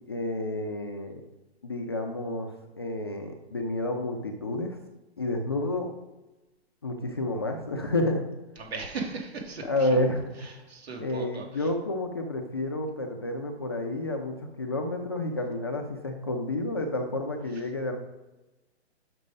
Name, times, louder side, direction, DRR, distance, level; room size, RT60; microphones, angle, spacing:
voice 1, 0.1-1.2 1.6-4.8 5.2-5.9 6.8-8.2 9.6-10.6 11.0-18.0, left 1 dB, 25° left, 2 dB, 0.4 m, -30 dB
voice 2, 8.6-9.9 10.4-11.7, right 3 dB, 65° right, 0 dB, 2.6 m, -37 dB
6.4 x 5.9 x 5.2 m, 1.1 s
hypercardioid pair, 155°, 34 cm